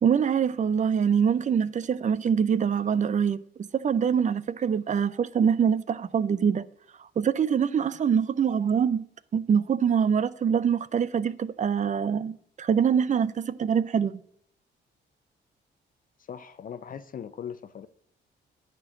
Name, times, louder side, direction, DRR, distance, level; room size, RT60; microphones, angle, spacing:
voice 1, 0.0-6.7 7.2-9.1 9.3-14.2, right 7 dB, 40° right, 0.5 m, -24 dB
voice 2, 16.2-17.9, left 8 dB, 45° left, 0.5 m, -39 dB
9.8 x 4.5 x 7.2 m
cardioid pair, 90°, 20 cm